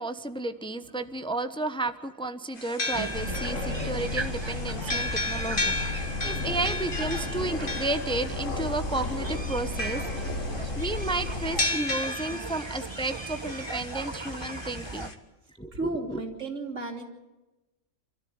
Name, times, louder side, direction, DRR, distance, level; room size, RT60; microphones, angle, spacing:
voice 1, 0.0-15.1 15.6-15.7, right 2 dB, 5° left, 10 dB, 1.0 m, -32 dB
sound 1, 2.6-15.1, left 2 dB, 45° left, 2.3 m, -35 dB
sound 2, 2.9-15.1, right 2 dB, 25° right, 1.1 m, -38 dB
Aircraft, 3.1-11.6, left 2 dB, 80° left, 2.4 m, -34 dB
voice 2, 15.7-17.0, right 2 dB, 85° right, 3 dB, 3.8 m, -33 dB
27.5 x 13.5 x 9.6 m, 1.1 s
omnidirectional pair, 1.3 m